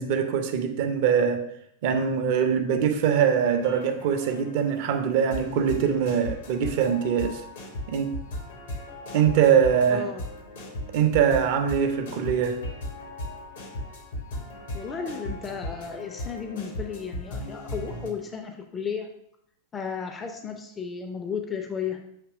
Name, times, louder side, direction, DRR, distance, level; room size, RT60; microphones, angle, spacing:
voice 1, 0.0-1.4 1.8-7.4 7.9-8.1 9.1-10.1 10.9-12.6, right 7 dB, 50° right, 7 dB, 0.7 m, -23 dB
sound 1, 3.5-18.1, left 1 dB, 60° left, 1.2 m, -37 dB
voice 2, 9.9-10.2 14.7-19.1 19.7-22.0, left 6 dB, 20° left, 4 dB, 0.6 m, -34 dB
6.6 x 2.9 x 4.8 m, 0.73 s
figure-of-eight pair, 90°, 0 cm